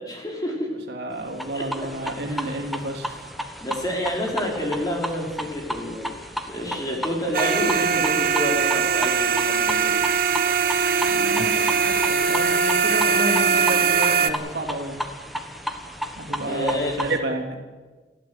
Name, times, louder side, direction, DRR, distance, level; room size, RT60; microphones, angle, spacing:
voice 1, 0.0-0.7 1.5-1.7 2.0-2.6 3.6-10.2 16.5-17.0, equal, 20° left, -1 dB, 4.7 m, -29 dB
voice 2, 0.9-3.2 11.0-15.0 16.2-17.5, right 1 dB, 70° right, 1 dB, 3.3 m, -30 dB
sound 1, 1.3-17.2, equal, ahead, 1.3 m, -33 dB
sound 2, 7.3-14.3, right 6 dB, 50° right, 1.0 m, -21 dB
29.0 x 12.5 x 8.2 m, 1.4 s
head